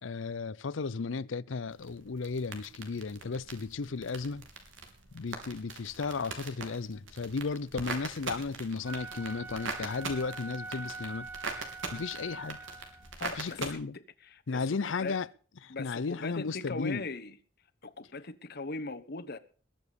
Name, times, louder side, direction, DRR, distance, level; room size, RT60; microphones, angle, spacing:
voice 1, 0.0-4.5 5.1-11.3 11.9-12.6 13.4-13.9 14.5-15.3 15.6-17.0, left 4 dB, 75° left, 0.6 m, -34 dB
sound 1, 1.7-13.7, right 4 dB, 90° right, 3.5 m, -42 dB
Wind instrument woodwind instrument, 8.8-13.1, right 3 dB, 10° right, 0.8 m, -43 dB
voice 2, 13.2-15.2 15.7-17.4 17.8-19.4, left 3 dB, 55° left, 1.2 m, -40 dB
21.0 x 7.2 x 6.9 m
head